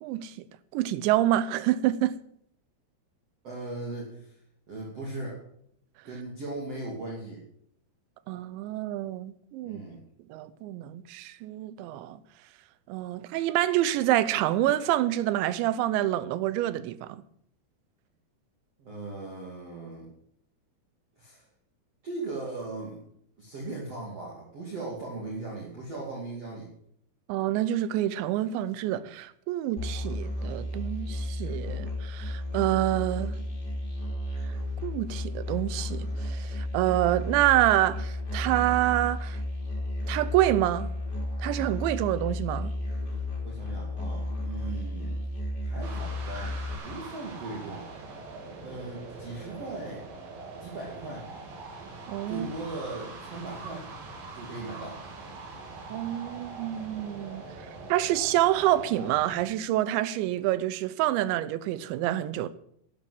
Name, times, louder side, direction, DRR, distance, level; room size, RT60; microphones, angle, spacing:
voice 1, 0.0-0.3 0.7-2.2 8.3-9.8 10.3-12.2 12.9-17.2 27.3-33.3 34.8-39.4 40.1-40.9 41.4-42.7 52.1-52.5 55.9-57.5 57.9-62.5, right 14 dB, 80° right, 3.0 m, -27 dB
voice 2, 3.4-4.3 4.7-5.4 6.0-7.4 9.6-10.0 18.8-20.1 21.2-21.4 22.0-23.0 23.4-26.7 43.4-45.2 45.6-47.9 48.6-50.0 50.6-51.3 52.3-53.9 54.3-55.0, right 2 dB, 40° right, 3.1 m, -38 dB
Musical instrument, 29.8-46.7, left 1 dB, 25° left, 3.8 m, -33 dB
sound 1, 45.8-59.4, right 3 dB, 55° right, 4.0 m, -43 dB
12.0 x 9.4 x 7.8 m
omnidirectional pair, 5.2 m